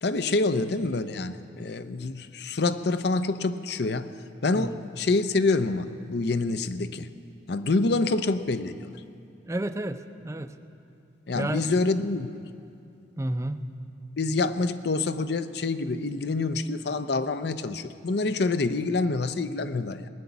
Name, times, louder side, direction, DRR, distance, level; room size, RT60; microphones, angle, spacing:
voice 1, 0.0-4.1 4.4-7.1 7.5-8.9 11.3-12.3 14.2-20.1, left 3 dB, 60° left, 12 dB, 0.6 m, -26 dB
voice 2, 9.5-10.6 11.3-11.7 13.2-13.7, right 1 dB, 15° right, 9 dB, 0.5 m, -31 dB
19.5 x 7.0 x 9.5 m, 2.6 s
head